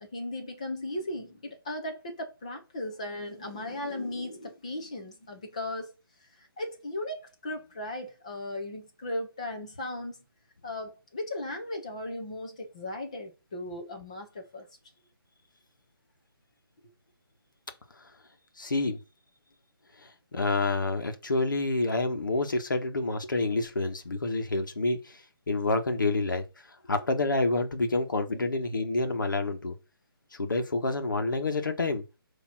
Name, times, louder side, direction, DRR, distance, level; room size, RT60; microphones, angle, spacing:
voice 1, 0.0-5.9 6.2-10.2 10.6-14.7 28.3-28.5, left 1 dB, 15° left, 0.9 m, -37 dB
voice 2, 18.6-19.0 20.3-25.2 25.5-26.4 26.9-29.7 30.3-32.0, left 2 dB, 55° left, 1.5 m, -28 dB
6.8 x 3.0 x 5.8 m
hypercardioid pair, 180°, 12 cm